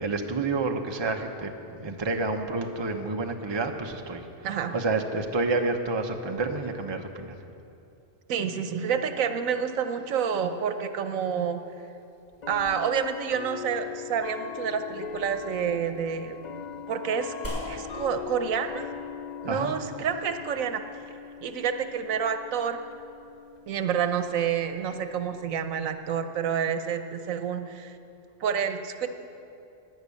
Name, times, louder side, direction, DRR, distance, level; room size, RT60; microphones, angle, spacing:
voice 1, 0.0-4.3 4.7-7.3 19.5-19.7, right 3 dB, 25° right, 4 dB, 0.8 m, -29 dB
voice 2, 4.4-4.7 8.3-11.6 12.5-16.4 16.9-17.3 17.7-18.8 19.4-20.8 21.4-22.8 23.7-28.0 28.4-29.1, right 7 dB, 85° right, 8 dB, 1.2 m, -28 dB
sound 1, 10.2-10.3 11.4-11.5 12.4-25.6, left 8 dB, 65° left, 0.4 m, -41 dB
sound 2, 17.4-26.2, equal, 10° left, 2.8 m, -45 dB
12.0 x 10.0 x 8.4 m, 2.7 s
omnidirectional pair, 1.4 m